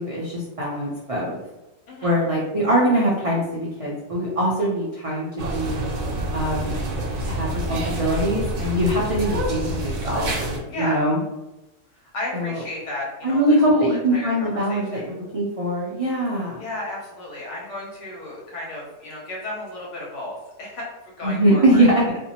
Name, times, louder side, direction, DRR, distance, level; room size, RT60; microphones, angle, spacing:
voice 1, 0.0-1.4 2.0-5.8 6.3-6.7 7.2-10.3 10.8-11.2 12.3-12.6 13.2-16.6 21.2-22.2, right 1 dB, 55° right, -5 dB, 0.4 m, -22 dB
sound 1, 5.4-10.6, right 1 dB, 80° right, 0.9 m, -27 dB
voice 2, 10.7-11.1 12.1-15.1 16.6-21.9, left 1 dB, 70° left, -3 dB, 1.1 m, -33 dB
2.6 x 2.1 x 2.8 m, 0.99 s
omnidirectional pair, 1.3 m